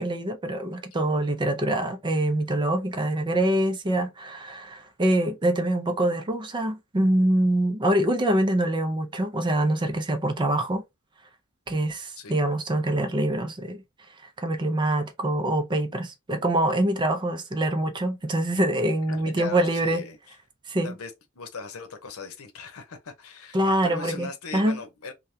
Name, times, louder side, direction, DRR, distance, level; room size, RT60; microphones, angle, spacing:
voice 1, 0.0-10.8 11.7-13.8 14.4-20.0 20.7-20.9 23.5-24.8, right 1 dB, 20° right, 0.4 m, -25 dB
voice 2, 19.1-20.4 20.8-25.1, left 4 dB, 90° left, 0.8 m, -39 dB
3.3 x 2.2 x 2.7 m
head